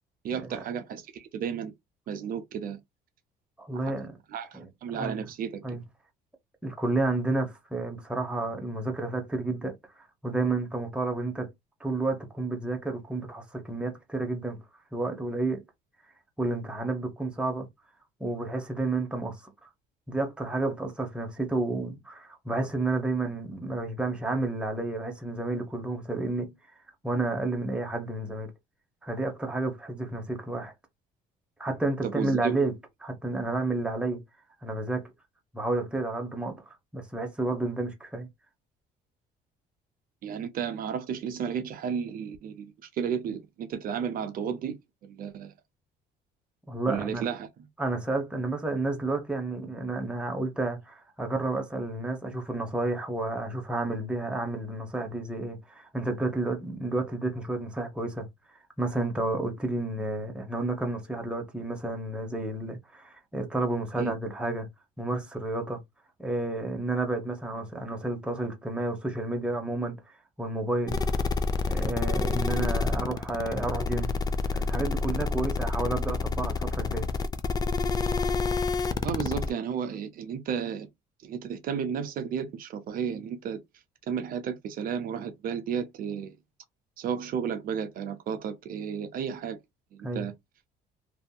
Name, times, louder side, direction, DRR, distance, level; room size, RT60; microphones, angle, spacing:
voice 1, 0.2-1.7 2.1-2.8 3.8-3.9 4.3-5.8 32.0-32.6 40.2-44.8 45.0-45.5 46.9-47.5 64.0-64.1 79.0-80.9 81.2-83.6 84.1-86.4 87.0-89.6 89.9-90.3, right 7 dB, 55° right, 0.6 m, -33 dB
voice 2, 3.6-4.2 4.5-5.2 5.6-5.8 6.6-9.7 10.2-11.5 11.8-14.6 14.9-15.6 16.4-17.7 18.2-19.7 20.1-26.5 27.0-28.5 29.0-30.7 31.6-32.7 33.0-34.2 34.6-35.1 35.5-36.6 36.9-38.3 46.7-47.3 47.8-58.3 58.8-64.7 65.0-65.8 66.2-70.0 70.4-71.0 71.6-74.2 74.5-77.1 90.0-90.3, right 2 dB, 5° right, 0.9 m, -31 dB
sound 1, 70.9-79.5, left 4 dB, 25° left, 0.4 m, -28 dB
2.7 x 2.7 x 2.2 m
cardioid pair, 110°, 17 cm